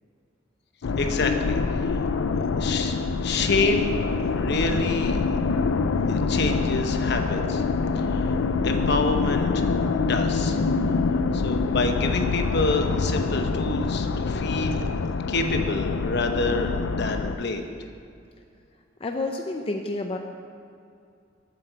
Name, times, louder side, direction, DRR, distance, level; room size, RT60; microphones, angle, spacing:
sound 1, 0.8-17.4, left 4 dB, 75° left, 0.4 m, -25 dB
voice 1, 1.0-1.6 1.9-2.0 2.6-3.0 3.2-3.9 4.2-5.2 6.1-7.6 8.0-8.3 8.6-10.6 11.3-14.8 15.3-17.7, left 3 dB, 60° left, 5 dB, 0.9 m, -27 dB
voice 2, 19.0-20.2, left 2 dB, 30° left, 3 dB, 0.5 m, -29 dB
7.6 x 7.5 x 8.1 m, 2.4 s
head